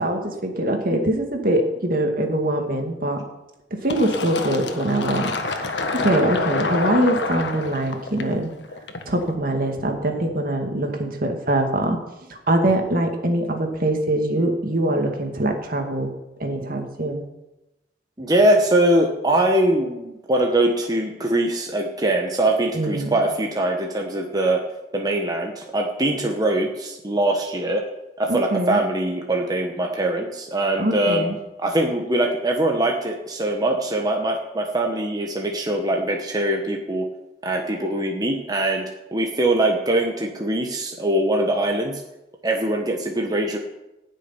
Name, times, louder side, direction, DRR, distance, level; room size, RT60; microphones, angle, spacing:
voice 1, 0.0-3.2 3.7-8.5 9.1-12.0 12.3-16.1 16.4-17.2 22.7-23.2 28.3-28.8 30.8-31.4, right 1 dB, 55° right, 3 dB, 2.2 m, -23 dB
Fill (with liquid), 3.9-9.3, left 3 dB, 75° left, 1.6 m, -27 dB
voice 2, 18.2-24.6 24.9-27.8 28.2-31.2 31.6-37.1 37.4-38.8 39.1-42.0 42.4-43.6, right 1 dB, 20° right, 1 dB, 1.3 m, -22 dB
15.5 x 6.6 x 9.8 m, 0.98 s
head